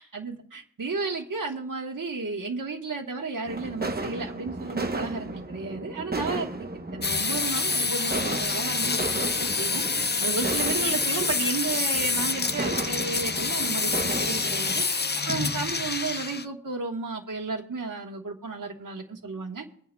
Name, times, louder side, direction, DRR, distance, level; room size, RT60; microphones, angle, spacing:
voice 1, 0.0-9.8 10.2-14.8 15.3-19.7, right 4 dB, 65° right, 1 dB, 1.4 m, -33 dB
sound 1, 3.5-14.8, right 2 dB, 30° right, 0.9 m, -35 dB
sound 2, 7.0-16.5, left 4 dB, 30° left, 0.6 m, -27 dB
24.0 x 9.2 x 2.3 m, 0.63 s
wide cardioid pair, 80°, 34 cm